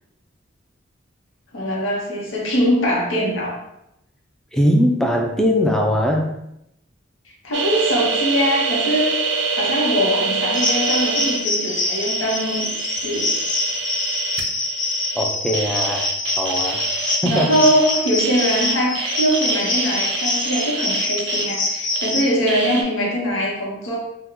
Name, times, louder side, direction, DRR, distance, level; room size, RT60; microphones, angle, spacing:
voice 1, 1.5-3.6 7.4-13.3 17.2-24.0, equal, 90° left, -1 dB, 0.8 m, -22 dB
voice 2, 4.5-6.3 15.1-16.1 16.4-16.9 17.2-17.5, equal, 5° left, 1 dB, 0.3 m, -20 dB
sound 1, 7.5-22.1 22.5-22.8, right 4 dB, 65° right, 0.4 m, -26 dB
sound 2, 10.5-22.3, left 2 dB, 40° left, 0.6 m, -25 dB
2.9 x 2.1 x 3.7 m, 0.83 s
head